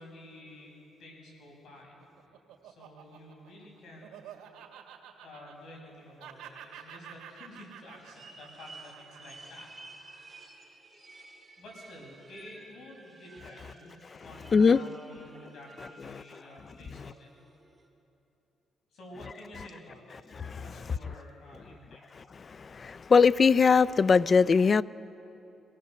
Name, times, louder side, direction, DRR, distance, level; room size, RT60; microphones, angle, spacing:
voice 1, 0.0-2.0 2.6-4.1 5.2-9.7 10.1-10.3 11.6-17.3 18.9-20.2 20.6-22.0, left 1 dB, 65° left, -1 dB, 6.8 m, -50 dB
Laughter, 1.7-5.9 6.2-10.6, right 9 dB, 85° right, 2.0 m, -50 dB
sound 1, 6.3-17.9, right 2 dB, 20° right, 4.4 m, -54 dB
voice 2, 22.7-24.8, left 5 dB, 40° left, 19 dB, 0.4 m, -21 dB
24.5 x 17.5 x 6.8 m, 2.9 s
cardioid pair, 90°, 0 cm